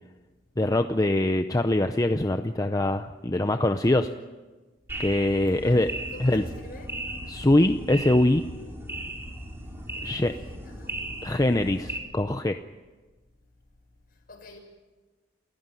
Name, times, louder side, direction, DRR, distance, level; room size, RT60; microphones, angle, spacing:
voice 1, 0.6-4.1 5.0-5.9 6.2-6.4 7.3-8.4 10.0-10.3 11.2-12.6, left 1 dB, 20° left, 8 dB, 0.7 m, -23 dB
sound 1, 4.9-12.0, right 1 dB, 15° right, 4.2 m, -37 dB
voice 2, 5.2-5.8 6.1-7.0 9.9-11.0 14.1-14.6, left 2 dB, 50° left, 2 dB, 7.0 m, -48 dB
29.0 x 15.5 x 9.2 m, 1.3 s
head